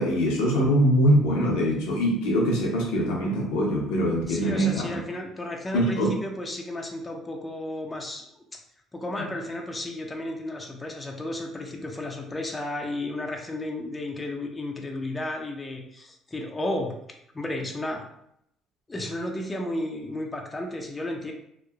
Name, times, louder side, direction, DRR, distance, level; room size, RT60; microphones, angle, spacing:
voice 1, 0.0-5.0 5.7-6.1 9.2-9.3, equal, 85° left, -1 dB, 0.6 m, -23 dB
voice 2, 4.3-8.6 8.9-16.9 17.3-18.0 18.9-21.3, left 1 dB, 20° left, 2 dB, 0.4 m, -33 dB
2.9 x 2.1 x 2.3 m, 0.75 s
supercardioid pair, 90°, 0 cm